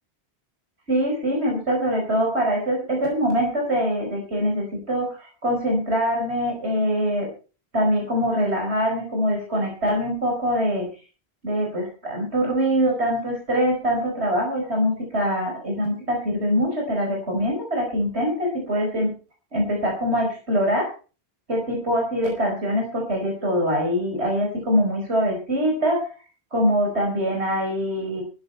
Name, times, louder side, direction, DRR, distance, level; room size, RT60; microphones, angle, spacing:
voice 1, 0.9-7.3 7.7-10.9 11.4-19.1 19.5-20.9 21.5-26.1 26.5-28.2, equal, 85° right, 0 dB, 5.3 m, -23 dB
15.5 x 12.5 x 4.3 m, 0.35 s
omnidirectional pair, 1.1 m